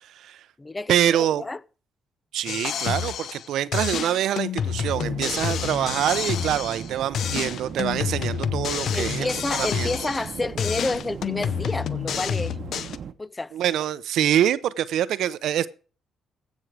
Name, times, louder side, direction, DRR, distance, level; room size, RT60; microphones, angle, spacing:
voice 1, 0.0-0.4 0.9-1.4 2.3-9.9 13.5-15.7, right 11 dB, 80° right, 0.7 m, -25 dB
voice 2, 0.6-1.6 8.9-12.6 13.2-13.5, left 2 dB, 20° left, 0.5 m, -30 dB
sound 1, 2.5-3.5 3.7-6.9 7.1-10.3 10.6-13.0, left 8 dB, 70° left, 0.7 m, -28 dB
sound 2, 4.8-13.1, right 7 dB, 60° right, 1.0 m, -38 dB
15.5 x 6.4 x 4.8 m
cardioid pair, 90°, 0 cm